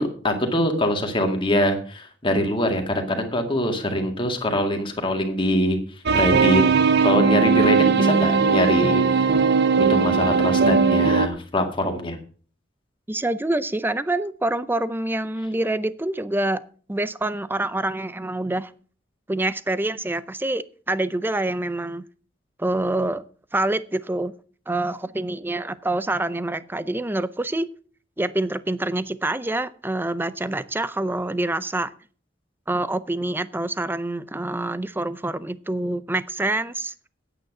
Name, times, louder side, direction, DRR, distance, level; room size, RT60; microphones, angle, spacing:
voice 1, 0.0-5.8 6.1-6.6 7.0-9.3 9.9-12.2, left 1 dB, 30° left, 2.1 m, -23 dB
sound 1, 6.1-11.3, right 5 dB, 60° right, 0.7 m, -18 dB
voice 2, 13.1-16.6 16.9-18.7 19.3-22.0 22.6-23.2 23.5-24.3 24.7-27.7 28.2-31.9 32.7-36.9, right 2 dB, 10° right, 0.5 m, -26 dB
9.2 x 8.8 x 6.0 m
head